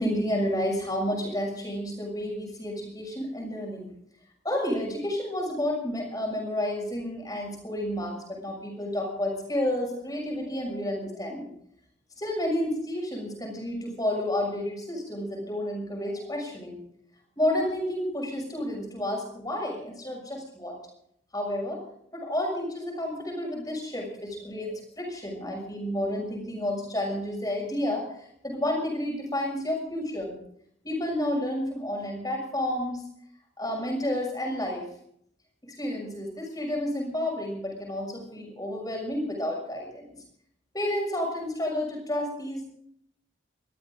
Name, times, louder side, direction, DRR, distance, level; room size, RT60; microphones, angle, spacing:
voice 1, 0.0-3.9 4.4-11.5 12.2-16.8 17.4-20.8 21.3-21.8 22.1-28.1 28.4-30.4 30.8-33.0 33.6-34.8 35.6-40.0 40.7-42.6, left 1 dB, 20° left, 1 dB, 6.4 m, -30 dB
22.5 x 14.5 x 3.9 m, 0.69 s
head